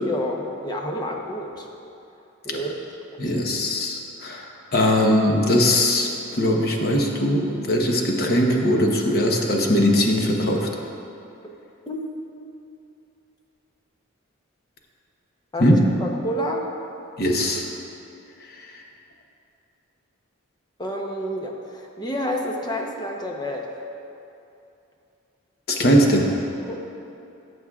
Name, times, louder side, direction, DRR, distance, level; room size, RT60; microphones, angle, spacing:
voice 1, 0.0-1.7 2.4-2.8 11.9-12.0 15.5-16.6 20.8-23.7 26.6-26.8, equal, 20° left, 1 dB, 0.8 m, -29 dB
voice 2, 3.2-10.7 15.6-15.9 17.2-17.6 18.5-18.8 25.7-26.3, equal, 45° left, 0 dB, 1.0 m, -20 dB
17.5 x 7.1 x 2.4 m, 2.7 s
head